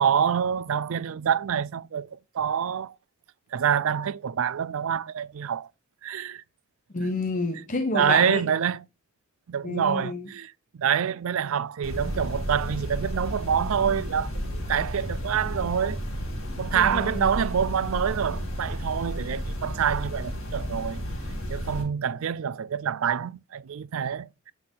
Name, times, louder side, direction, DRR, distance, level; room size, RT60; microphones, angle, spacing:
voice 1, 0.0-3.0 3.5-5.7 6.0-6.4 7.9-8.8 9.5-10.5 10.8-16.0 16.6-21.0 21.5-24.5, right 8 dB, 70° right, 0.4 m, -26 dB
voice 2, 6.9-8.5 9.6-10.3 16.7-17.3, left 2 dB, 35° left, 0.9 m, -29 dB
sound 1, 11.8-21.8, equal, 70° left, 3.4 m, -32 dB
8.0 x 5.8 x 3.8 m
head